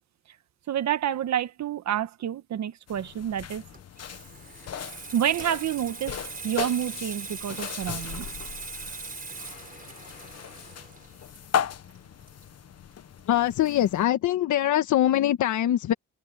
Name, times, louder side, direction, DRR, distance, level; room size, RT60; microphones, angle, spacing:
voice 1, 0.7-3.6 4.9-6.1 6.4-8.3, right 10 dB, 65° right, 1.4 m, -28 dB
sound 1, 2.9-14.0, left 9 dB, 55° left, 1.4 m, -37 dB
Water tap faucet / Sink (filling or washing), 3.6-12.9 13.2-13.5, right 4 dB, 30° right, 5.1 m, -41 dB
voice 2, 13.3-15.9, left 12 dB, 75° left, 1.5 m, -23 dB
cardioid pair, 90°, 30 cm